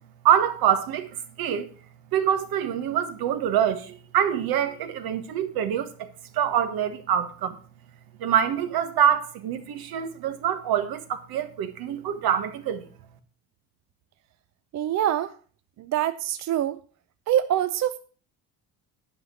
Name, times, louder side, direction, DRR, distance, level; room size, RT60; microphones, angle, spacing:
voice 1, 0.2-1.7 2.1-6.1 6.3-7.6 8.2-12.9, right 9 dB, 75° right, 1.4 m, -25 dB
voice 2, 14.7-15.3 15.8-16.8 17.3-18.0, right 11 dB, 50° right, 0.5 m, -25 dB
11.0 x 5.9 x 6.2 m
cardioid pair, 145°, 36 cm